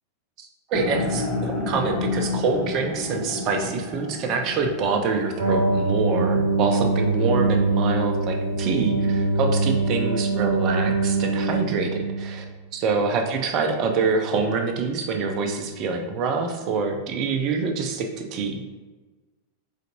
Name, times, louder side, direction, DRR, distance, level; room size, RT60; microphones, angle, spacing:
voice 1, 0.4-12.4 12.7-18.6, right 4 dB, 40° right, 4 dB, 0.5 m, -26 dB
sound 1, 0.7-6.9, left 2 dB, 15° left, 0.6 m, -31 dB
sound 2, 5.4-12.5, right 3 dB, 75° right, 0.9 m, -23 dB
3.9 x 3.3 x 2.7 m, 1.3 s
figure-of-eight pair, 90°, 0 cm